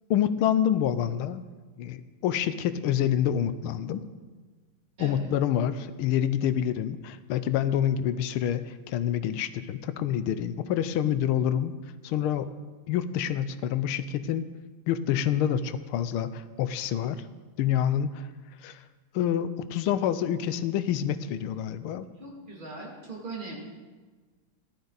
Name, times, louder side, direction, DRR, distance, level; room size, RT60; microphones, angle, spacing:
voice 1, 0.1-1.4 1.8-4.0 5.0-11.7 12.0-12.5 12.9-14.5 14.9-17.2 17.6-18.3 18.6-18.8 19.1-22.1, left 10 dB, 85° left, 13 dB, 1.5 m, -27 dB
voice 2, 22.2-23.5, right 3 dB, 25° right, -3 dB, 2.7 m, -40 dB
15.0 x 12.0 x 4.0 m, 1.3 s
omnidirectional pair, 2.3 m